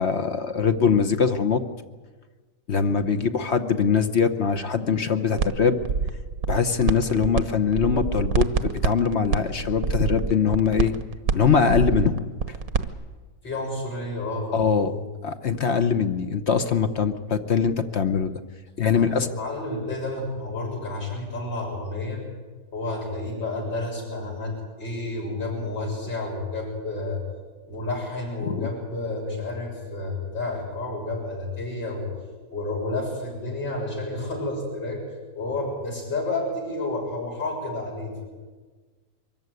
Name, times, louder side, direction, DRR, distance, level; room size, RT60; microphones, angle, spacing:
voice 1, 0.0-1.6 2.7-5.8 6.5-10.9 11.3-12.2 12.5-12.6 14.5-14.9 15.2-18.3 18.8-19.3 28.5-28.7, left 6 dB, 45° left, 9 dB, 1.0 m, -22 dB
sound 1, 5.4-5.5 5.8-7.4 7.7-12.9, right 5 dB, 55° right, 1.3 m, -25 dB
voice 2, 13.4-15.0 18.9-22.2 22.7-24.5 24.8-27.2 27.7-32.1 32.5-35.0 35.3-38.2, left 2 dB, 85° left, -2 dB, 7.6 m, -30 dB
24.0 x 14.5 x 9.5 m, 1.4 s
omnidirectional pair, 2.0 m